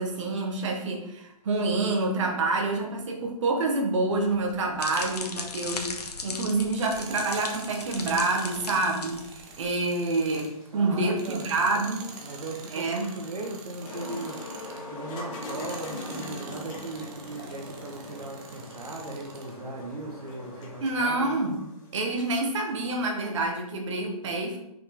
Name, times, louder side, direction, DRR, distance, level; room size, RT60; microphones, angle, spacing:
voice 1, 0.0-12.1 12.7-13.1 20.8-21.6 21.9-24.6, right 2 dB, 50° right, 1 dB, 1.6 m, -27 dB
sound 1, 4.3-9.7, left 3 dB, 85° left, 1.2 m, -37 dB
Tools, 6.7-14.9 15.3-19.6, right 5 dB, 20° right, 0.7 m, -46 dB
sound 2, 10.3-23.4, left 2 dB, 20° left, 1.4 m, -42 dB
voice 2, 10.7-11.5 12.2-14.6 14.9-21.4, right 2 dB, 75° right, 0 dB, 1.4 m, -38 dB
5.5 x 5.4 x 3.8 m, 0.83 s
hypercardioid pair, 145°, 20 cm